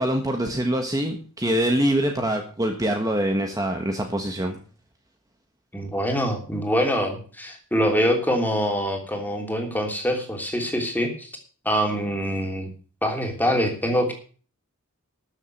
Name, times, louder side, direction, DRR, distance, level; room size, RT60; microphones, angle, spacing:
voice 1, 0.0-4.6, right 1 dB, 15° right, 3 dB, 1.4 m, -24 dB
voice 2, 5.7-11.3 11.6-12.7 13.0-14.1, equal, 10° left, 3 dB, 3.0 m, -24 dB
13.0 x 7.2 x 7.8 m, 0.41 s
head